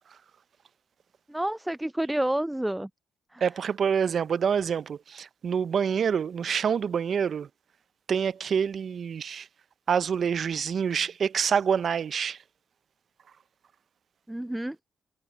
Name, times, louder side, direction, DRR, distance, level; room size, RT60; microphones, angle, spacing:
voice 1, 1.3-2.9 3.3-3.4 14.3-14.8, right 1 dB, 10° right, 0.5 m, -29 dB
voice 2, 3.4-7.5 8.1-9.5 9.9-12.4, right 7 dB, 55° right, 0.7 m, -26 dB
hypercardioid pair, 50°, 0 cm